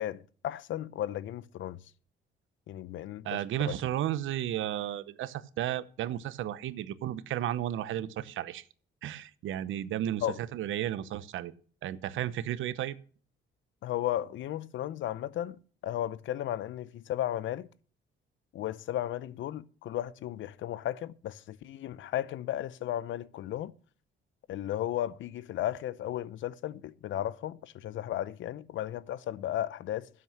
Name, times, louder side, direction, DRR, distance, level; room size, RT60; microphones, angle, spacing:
voice 1, 0.0-1.8 2.7-3.4 3.7-3.8 10.2-10.4 13.8-17.7 18.5-23.7 24.5-30.1, left 12 dB, 75° left, 0.7 m, -35 dB
voice 2, 3.2-8.6 9.0-11.5 11.8-13.0, right 12 dB, 80° right, 0.8 m, -33 dB
12.0 x 7.7 x 5.8 m
cardioid pair, 90°, 20 cm